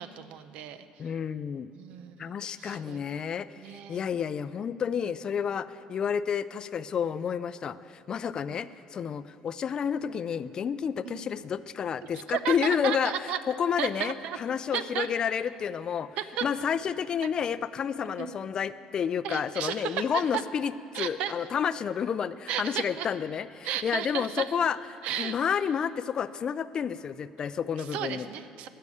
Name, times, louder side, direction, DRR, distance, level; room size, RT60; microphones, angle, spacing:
voice 1, 0.0-0.9 1.7-3.2 3.6-4.0 8.5-8.6 11.0-11.2 12.1-13.4 13.8-14.4 14.7-15.1 16.2-16.4 18.2-18.4 19.2-20.4 20.9-21.4 22.5-23.1 23.6-24.5 25.0-25.4 27.8-28.7, right 10 dB, 70° right, 12 dB, 0.6 m, -34 dB
voice 2, 1.0-1.7 2.2-3.5 3.9-7.8 8.1-16.1 16.4-20.7 21.0-24.8 25.2-28.3, left 7 dB, 40° left, 15 dB, 0.4 m, -30 dB
13.5 x 6.7 x 8.4 m, 2.5 s
cardioid pair, 120°, 2 cm